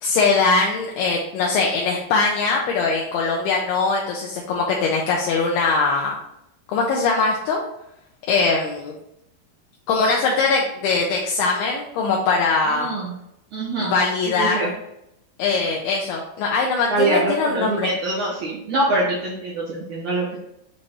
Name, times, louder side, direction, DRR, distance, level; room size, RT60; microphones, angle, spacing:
voice 1, 0.0-6.2 6.7-7.6 8.3-8.9 9.9-12.9 13.8-14.7 15.4-17.9, left 4 dB, 75° left, -1 dB, 2.5 m, -21 dB
voice 2, 12.7-13.1 13.5-13.9 14.4-14.7 16.9-20.4, right 2 dB, 60° right, -8 dB, 2.2 m, -24 dB
7.6 x 3.2 x 4.1 m, 0.81 s
omnidirectional pair, 5.0 m